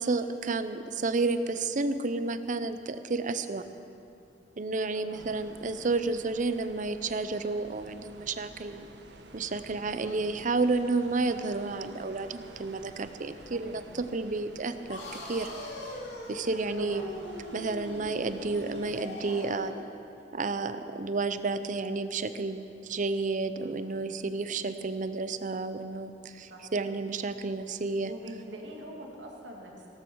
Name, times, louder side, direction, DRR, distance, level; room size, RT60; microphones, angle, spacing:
voice 1, 0.0-3.6 4.6-8.9 9.3-15.0 15.3-15.5 16.3-17.0 17.5-19.8 20.3-28.1, right 3 dB, 45° right, 11 dB, 0.6 m, -31 dB
voice 2, 4.9-5.3 13.5-13.8 16.8-17.2 23.6-24.0 26.5-26.7 28.0-29.9, right 1 dB, 90° right, -1 dB, 2.4 m, -45 dB
sound 1, 5.1-19.1, right 1 dB, 70° right, 1.2 m, -51 dB
sound 2, 14.9-19.8, left 1 dB, 75° left, 2.4 m, -41 dB
17.0 x 13.5 x 4.7 m, 2.8 s
head